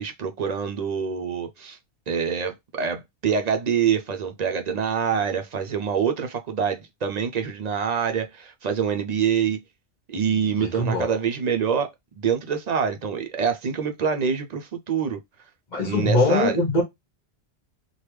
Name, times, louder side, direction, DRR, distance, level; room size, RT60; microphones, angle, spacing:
voice 1, 0.0-1.8 2.1-9.6 10.1-15.2 15.8-16.6, right 7 dB, 55° right, 0.5 m, -25 dB
voice 2, 10.6-11.2 15.7-16.8, left 2 dB, 40° left, 1.0 m, -22 dB
3.3 x 2.3 x 3.0 m
omnidirectional pair, 1.1 m